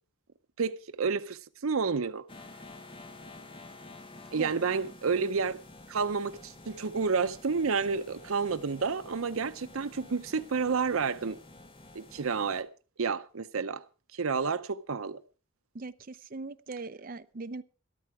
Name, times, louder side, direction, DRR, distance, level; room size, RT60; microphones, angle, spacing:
voice 1, 0.6-2.2 4.3-5.6 5.9-11.4 11.9-12.7 13.0-13.8 14.1-15.2, right 5 dB, 80° right, 0.7 m, -30 dB
sound 1, 2.3-12.6, left 2 dB, 25° left, 1.3 m, -50 dB
voice 2, 15.7-17.6, right 3 dB, 40° right, 0.6 m, -40 dB
13.5 x 12.0 x 4.8 m
head